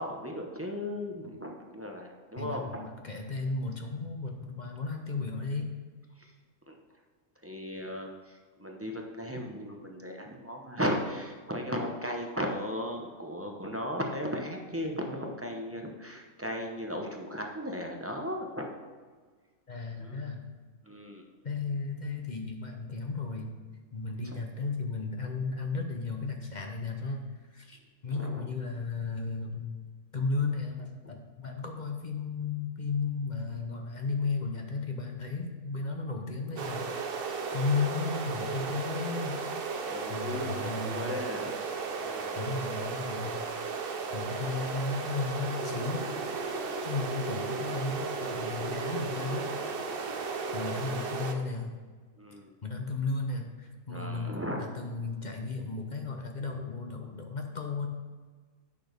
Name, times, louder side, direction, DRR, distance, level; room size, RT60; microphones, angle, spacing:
voice 1, 0.0-2.8 6.1-6.3 6.7-7.0 7.4-18.7 20.0-20.2 20.8-21.3 24.2-24.4 28.1-28.5 39.8-41.6 42.0-42.4 52.2-52.5 53.9-54.7, equal, 15° right, 1 dB, 0.6 m, -36 dB
voice 2, 2.4-5.7 19.7-20.6 21.4-23.6 23.9-27.2 27.5-29.7 30.1-37.0 37.5-39.4 40.1-41.1 42.4-43.3 44.1-46.1 46.8-49.5 50.2-51.7 52.6-57.9, left 4 dB, 35° left, 2 dB, 0.8 m, -34 dB
sound 1, 36.6-51.3, right 4 dB, 50° right, 0.7 m, -35 dB
8.8 x 6.2 x 5.2 m, 1.5 s
omnidirectional pair, 1.7 m